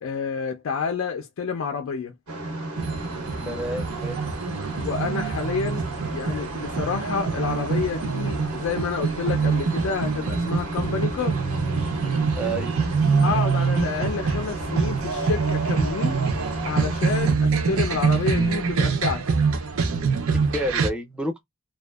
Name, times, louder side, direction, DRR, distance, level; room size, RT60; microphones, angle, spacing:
voice 1, 0.0-2.1 4.8-11.4 13.2-16.2 16.7-19.2, left 5 dB, 60° left, 0.3 m, -29 dB
sound 1, 2.3-17.4, right 2 dB, 90° right, 0.8 m, -34 dB
sound 2, 2.8-20.9, right 5 dB, 70° right, 0.5 m, -25 dB
voice 2, 3.5-4.2 12.3-12.7 20.3-21.4, right 1 dB, 5° right, 0.5 m, -29 dB
2.5 x 2.2 x 2.2 m
head